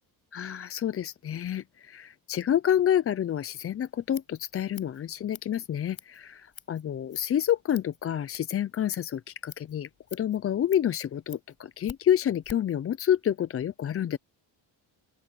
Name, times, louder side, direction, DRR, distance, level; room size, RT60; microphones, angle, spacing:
voice 1, 0.3-14.2, left 10 dB, 30° left, 0.4 m, -28 dB
Scissors, 3.9-12.8, left 8 dB, 45° left, 5.7 m, -50 dB
open air
cardioid pair, 125°, 47 cm